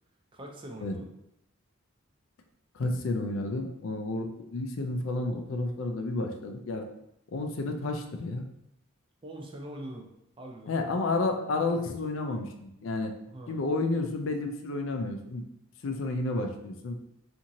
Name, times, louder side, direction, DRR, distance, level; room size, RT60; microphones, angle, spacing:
voice 1, 0.3-1.1 9.2-10.1 10.4-10.7 13.3-13.6, right 1 dB, 25° right, 1 dB, 0.4 m, -42 dB
voice 2, 2.7-6.8 7.3-8.5 10.7-13.1 13.5-15.4 15.8-17.0, left 2 dB, 60° left, 5 dB, 0.4 m, -31 dB
2.9 x 2.6 x 2.6 m, 0.79 s
head